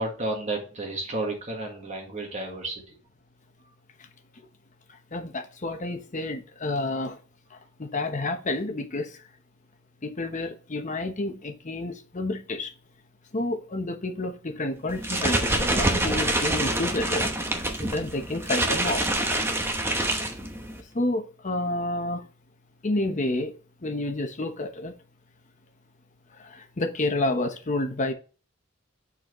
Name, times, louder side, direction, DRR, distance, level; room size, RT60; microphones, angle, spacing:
voice 1, 0.0-2.8, right 2 dB, 35° right, 1.6 m, -31 dB
voice 2, 5.1-7.2 7.8-9.2 10.0-12.7 13.3-17.3 17.8-19.1 20.9-22.2 22.8-23.5 23.8-24.9 26.4-28.1, left 2 dB, 40° left, 1.0 m, -29 dB
sound 1, 14.9-20.8, right 1 dB, 10° right, 0.9 m, -26 dB
7.6 x 4.3 x 3.1 m
head